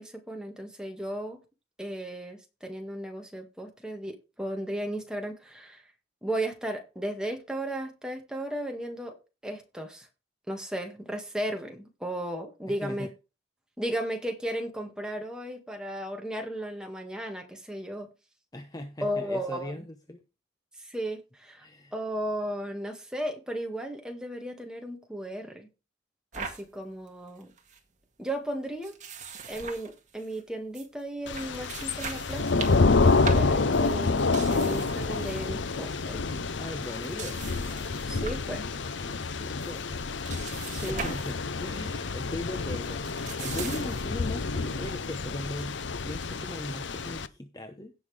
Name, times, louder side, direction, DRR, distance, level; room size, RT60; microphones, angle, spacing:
voice 1, 0.0-1.4 1.8-5.8 6.2-9.1 9.4-10.1 10.5-13.1 13.8-18.1 19.0-19.9 20.8-21.7 21.9-25.7 26.4-27.5 28.2-29.0 29.5-32.6 33.0-36.2 36.5-36.6 38.0-38.7 40.7-41.1, right 1 dB, 5° right, 3 dB, 1.9 m, -35 dB
voice 2, 12.7-13.1 18.5-20.2 21.6-21.9 36.6-37.4 39.2-39.8 40.9-47.9, left 1 dB, 20° left, 6 dB, 0.9 m, -39 dB
sound 1, 26.3-26.6 27.1-27.2 27.4-27.8 28.8-30.4 30.7-30.9 31.2-35.5 35.8-36.1 36.8-38.5 38.8-39.3 39.6-41.4 41.7-41.9 42.8-44.2, right 5 dB, 35° right, 1.9 m, -41 dB
Thunder / Rain, 31.3-47.3, left 3 dB, 65° left, 0.7 m, -28 dB
17.0 x 5.8 x 3.4 m, 0.29 s
head